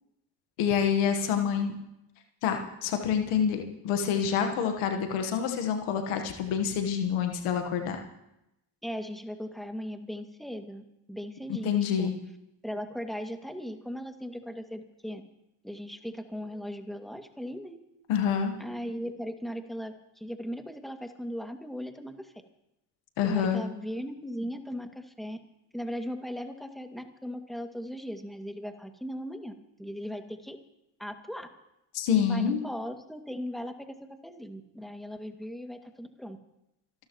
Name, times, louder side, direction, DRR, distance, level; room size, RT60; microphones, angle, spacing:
voice 1, 0.6-1.7 2.4-8.0 11.6-12.1 18.1-18.5 23.2-23.6 31.9-32.6, left 7 dB, 85° left, 5 dB, 1.4 m, -27 dB
voice 2, 8.8-12.1 12.6-15.2 15.6-17.8 18.6-22.3 23.2-25.4 25.7-29.5 29.8-30.6 31.0-31.5 32.3-34.0 34.2-36.4, equal, ahead, 5 dB, 2.1 m, -38 dB
27.5 x 13.0 x 3.1 m, 0.87 s
hypercardioid pair, 40°, 49 cm